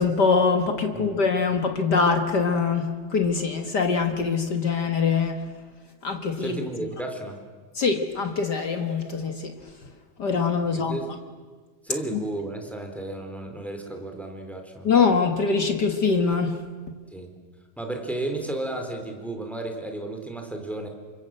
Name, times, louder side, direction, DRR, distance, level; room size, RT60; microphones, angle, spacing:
voice 1, 0.0-5.4 6.0-6.6 7.7-9.5 10.2-11.0 12.1-12.2 14.8-16.6, left 5 dB, 60° left, 5 dB, 1.0 m, -23 dB
voice 2, 6.4-7.4 10.7-11.1 11.8-14.9 17.1-17.4 17.8-20.9, right 2 dB, ahead, 4 dB, 3.4 m, -33 dB
29.0 x 25.0 x 7.8 m, 1.4 s
omnidirectional pair, 4.4 m